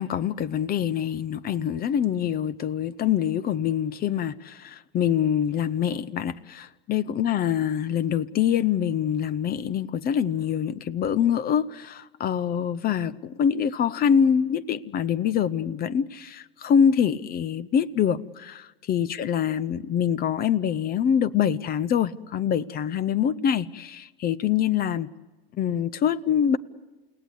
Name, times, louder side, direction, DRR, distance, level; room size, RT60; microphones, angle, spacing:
voice 1, 0.0-18.6 18.9-25.1 25.6-26.6, left 8 dB, 30° left, 0.7 m, -25 dB
29.5 x 17.5 x 8.0 m
hypercardioid pair, 100°, 30 cm